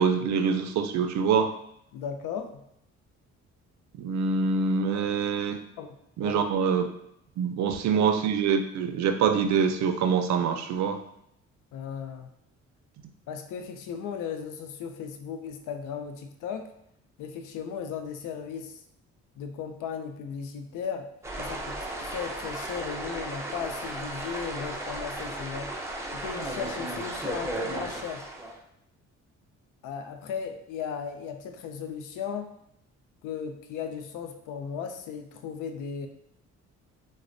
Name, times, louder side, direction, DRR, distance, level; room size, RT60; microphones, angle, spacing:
voice 1, 0.0-1.5 4.0-5.6 6.2-6.9 7.4-11.0, right 6 dB, 70° right, 7 dB, 0.5 m, -25 dB
voice 2, 1.9-2.6 5.8-5.9 6.2-6.7 7.9-8.1 11.7-12.3 13.3-16.7 17.2-18.8 19.4-21.1 21.4-25.8 26.1-28.3 29.8-32.5 33.2-36.1, left 7 dB, 85° left, 6 dB, 0.5 m, -36 dB
sound 1, 21.2-28.6, right 1 dB, 10° right, 0.5 m, -35 dB
4.1 x 2.1 x 2.5 m, 0.76 s
cardioid pair, 90°, 30 cm